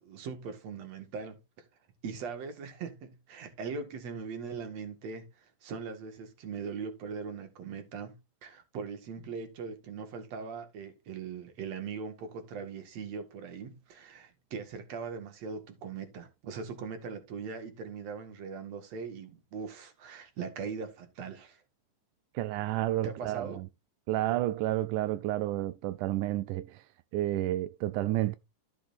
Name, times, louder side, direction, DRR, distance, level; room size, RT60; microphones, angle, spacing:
voice 1, 0.0-1.7 2.0-21.6 23.0-23.6, right 5 dB, 55° right, 2.7 m, -40 dB
voice 2, 22.4-23.7 24.1-26.8 27.1-28.4, right 15 dB, 80° right, 1.8 m, -30 dB
14.0 x 6.4 x 2.6 m
omnidirectional pair, 4.1 m